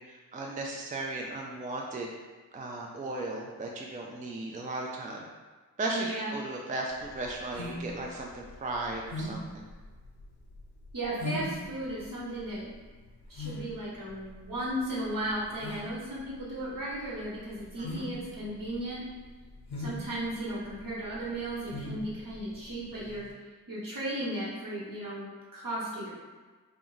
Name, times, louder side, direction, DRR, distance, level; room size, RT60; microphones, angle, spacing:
voice 1, 0.0-2.1 2.5-5.2 5.8-9.6 17.8-17.9, right 2 dB, 20° right, -1 dB, 0.3 m, -36 dB
voice 2, 5.9-6.3 10.9-12.7 13.3-19.0 19.8-23.3 23.7-26.1, right 1 dB, 55° right, -7 dB, 1.2 m, -35 dB
sound 1, 6.9-23.3, left 1 dB, 85° left, 0.6 m, -41 dB
2.3 x 2.0 x 3.9 m, 1.4 s
cardioid pair, 45°, 39 cm